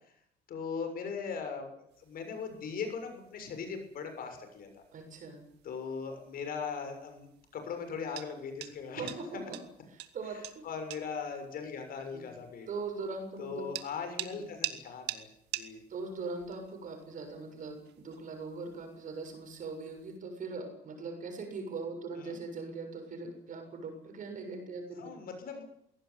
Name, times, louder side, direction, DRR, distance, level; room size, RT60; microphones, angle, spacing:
voice 1, 0.5-4.7 5.6-9.4 10.6-12.7 13.4-15.3 15.5-15.8 22.2-22.4 25.0-25.6, left 5 dB, 60° left, 6 dB, 6.8 m, -39 dB
sound 1, 1.9-20.2, right 14 dB, 80° right, 2.0 m, -47 dB
voice 2, 4.9-5.4 9.0-9.6 9.9-10.6 12.1-12.3 12.7-13.7 14.4-14.5 15.9-25.1, right 4 dB, 50° right, 5 dB, 7.1 m, -41 dB
22.0 x 17.5 x 9.5 m, 0.73 s
cardioid pair, 110°, 17 cm